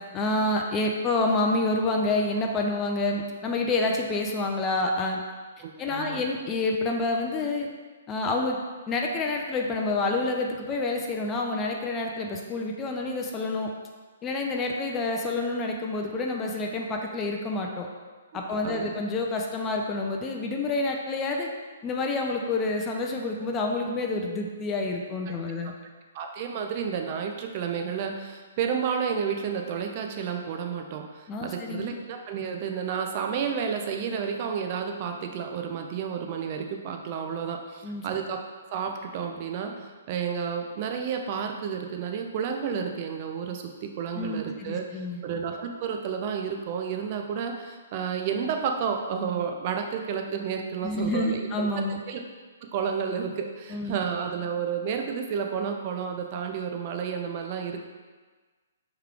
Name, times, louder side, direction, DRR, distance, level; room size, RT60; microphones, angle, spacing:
voice 1, 0.1-5.2 5.8-7.7 8.1-8.6 8.9-13.7 14.2-17.9 18.3-21.5 21.8-25.7 31.3-31.9 37.8-38.0 44.1-45.2 50.8-52.0 53.7-53.9, left 2 dB, 20° left, 1 dB, 0.5 m, -28 dB
voice 2, 5.6-6.2 18.5-18.9 26.1-38.4 38.7-51.7 52.1-52.2 52.6-57.8, right 7 dB, 40° right, 3 dB, 0.5 m, -31 dB
4.7 x 3.1 x 3.5 m, 1.4 s
hypercardioid pair, 130°, 0 cm